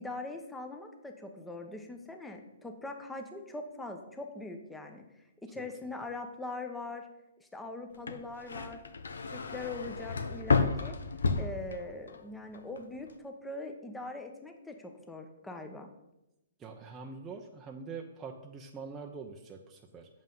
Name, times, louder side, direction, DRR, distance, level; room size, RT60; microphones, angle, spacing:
voice 1, 0.0-5.0 5.4-7.1 7.4-8.8 9.3-11.0 11.4-15.9, left 2 dB, 5° left, 5 dB, 1.0 m, -42 dB
sound 1, 7.9-12.2 12.5-13.1, left 4 dB, 85° left, 0.8 m, -32 dB
voice 2, 16.6-20.1, right 5 dB, 15° right, 1 dB, 0.7 m, -44 dB
7.6 x 5.5 x 5.5 m, 0.91 s
hypercardioid pair, 140°, 0 cm